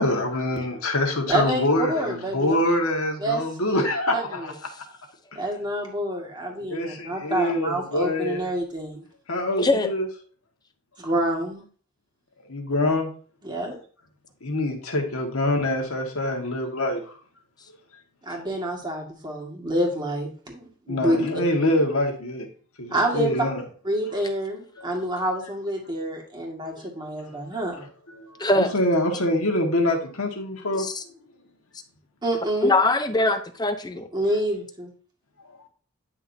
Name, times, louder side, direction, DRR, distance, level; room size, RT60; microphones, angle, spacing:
voice 1, 0.0-4.5 5.3-5.4 6.5-8.4 9.3-10.1 12.5-13.1 14.4-17.1 20.9-22.5 22.8-23.6 24.8-24.9 26.7-26.9 27.3-27.4 28.2-30.9, left 1 dB, 90° left, 3 dB, 1.7 m, -25 dB
voice 2, 1.3-2.6 3.2-3.8 4.1-4.5 5.3-9.0 11.0-11.6 13.4-13.8 18.3-21.3 22.9-23.5 23.8-27.9 32.2-32.7 34.1-34.9, right 1 dB, 20° right, 0 dB, 1.9 m, -27 dB
voice 3, 9.6-9.9 28.4-28.7 30.8-31.0 32.6-34.1, left 2 dB, 20° left, 9 dB, 0.6 m, -22 dB
9.9 x 6.0 x 2.7 m, 0.42 s
head